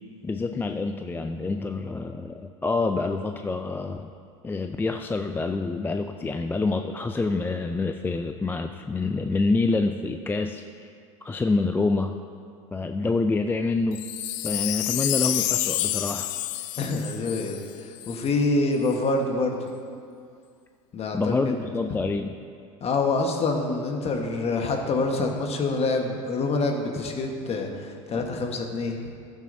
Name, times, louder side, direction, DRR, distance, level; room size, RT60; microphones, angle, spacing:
voice 1, 0.2-4.1 4.4-10.9 11.2-12.1 12.7-14.1 14.4-16.3 21.1-22.4, left 3 dB, 10° left, 6 dB, 0.3 m, -27 dB
Wind chime, 13.9-18.3 18.8-18.9, left 14 dB, 70° left, 0.5 m, -29 dB
voice 2, 16.8-17.6 18.1-19.6 20.9-21.5 22.8-29.0, left 3 dB, 40° left, 3 dB, 1.3 m, -26 dB
13.0 x 8.9 x 2.7 m, 2.3 s
hypercardioid pair, 85°, 17 cm